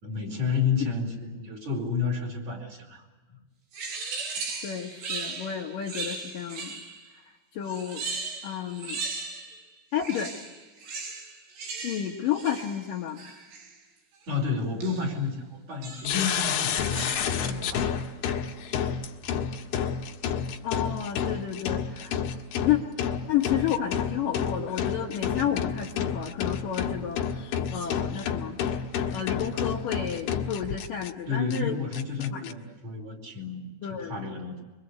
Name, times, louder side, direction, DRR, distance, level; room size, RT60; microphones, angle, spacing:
voice 1, 0.0-3.1 14.3-17.9 31.3-33.7 34.0-34.6, left 5 dB, 35° right, 1 dB, 5.9 m, -31 dB
sound 1, 3.7-7.1 7.6-9.6 9.9-13.8 14.8-15.2 15.8-16.3 16.7-17.5, right 4 dB, 70° right, 6.0 m, -37 dB
voice 2, 4.6-6.8 7.5-8.0 8.4-9.0 9.9-10.3 11.8-13.2 20.6-22.2 22.6-22.8 23.3-28.6 29.1-31.8 32.3-32.5 33.8-34.2, left 10 dB, 60° left, 0 dB, 2.6 m, -31 dB
sound 2, 16.0-31.1 31.5-31.6 31.9-32.5, left 7 dB, 85° left, 4.2 m, -30 dB
26.0 x 24.5 x 8.1 m, 1.2 s
omnidirectional pair, 5.3 m